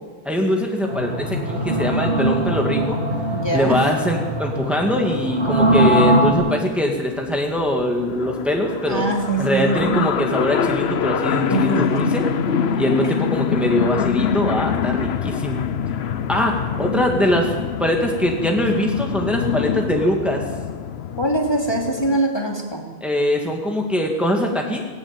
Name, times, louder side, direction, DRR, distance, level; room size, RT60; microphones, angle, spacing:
voice 1, 0.2-3.0 3.5-9.1 9.4-12.2 12.8-15.6 16.3-17.5 17.8-20.4 23.0-24.8, equal, ahead, 1 dB, 2.4 m, -22 dB
sound 1, 0.9-6.3, right 1 dB, 75° right, 4.2 m, -21 dB
voice 2, 3.3-3.8 8.9-10.1 11.5-12.0 21.2-22.8, right 2 dB, 25° left, 1 dB, 2.8 m, -22 dB
sound 2, 6.5-22.2, left 7 dB, 70° left, 1.1 m, -25 dB
19.5 x 18.5 x 9.1 m, 1.4 s
omnidirectional pair, 1.1 m